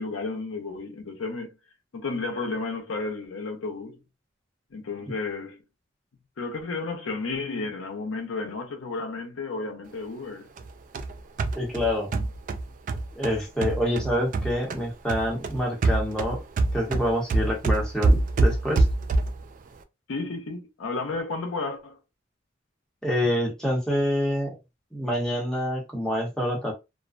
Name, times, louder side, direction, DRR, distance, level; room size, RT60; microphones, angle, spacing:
voice 1, 0.0-1.5 1.9-4.0 4.7-5.6 6.4-10.5 20.1-22.0, left 3 dB, 80° left, 0.6 m, -32 dB
sound 1, 10.6-14.8 15.1-19.5, right 2 dB, 40° right, 0.3 m, -25 dB
voice 2, 11.5-12.1 13.2-16.4 16.7-18.9 23.0-24.5 24.9-26.7, equal, 5° left, 0.8 m, -26 dB
2.4 x 2.1 x 2.4 m
head